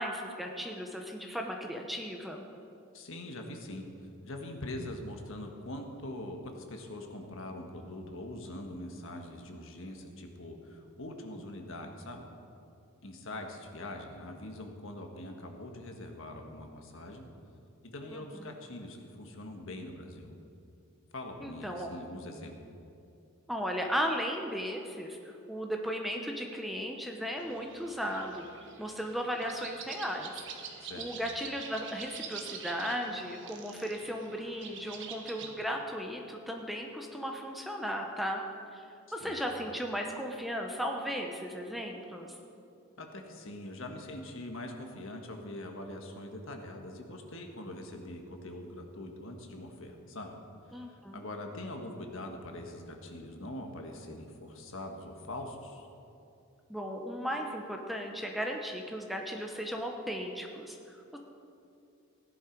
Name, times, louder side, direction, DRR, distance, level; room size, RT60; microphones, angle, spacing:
voice 1, 0.0-2.4 18.1-18.5 21.4-21.9 23.5-25.2 25.5-30.4 31.0-38.4 38.7-38.9 39.1-42.3 50.7-51.2 56.7-61.2, equal, ahead, 1 dB, 0.8 m, -36 dB
voice 2, 2.9-3.8 4.2-12.2 13.0-17.2 17.9-20.3 21.1-22.5 30.8-31.1 35.4-35.5 39.1-39.4 43.0-50.3 50.7-55.9, left 1 dB, 60° left, 3 dB, 1.5 m, -43 dB
sound 1, 27.4-35.5, right 6 dB, 55° right, 1.3 m, -46 dB
16.5 x 11.0 x 4.7 m, 2.7 s
head